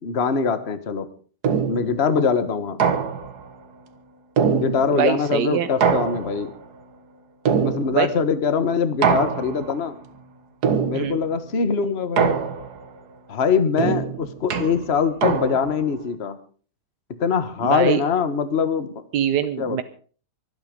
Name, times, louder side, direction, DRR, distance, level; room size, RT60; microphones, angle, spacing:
voice 1, 0.0-1.1 1.6-2.8 4.5-6.5 7.6-9.9 10.8-12.4 13.3-16.4 17.2-18.9 19.6-19.8, left 5 dB, 40° left, 11 dB, 1.6 m, -23 dB
sound 1, 1.4-2.0 2.8-3.5 4.4-5.1 5.8-6.6 7.5-8.2 9.0-9.8 10.6-11.3 12.2-12.9 13.8-15.8, right 6 dB, 70° right, 1.9 m, -23 dB
voice 2, 4.9-5.7 7.9-8.1 10.9-11.2 17.6-18.0 19.1-19.8, right 9 dB, 90° right, 10 dB, 1.5 m, -23 dB
24.5 x 9.1 x 5.2 m, 0.43 s
omnidirectional pair, 1.8 m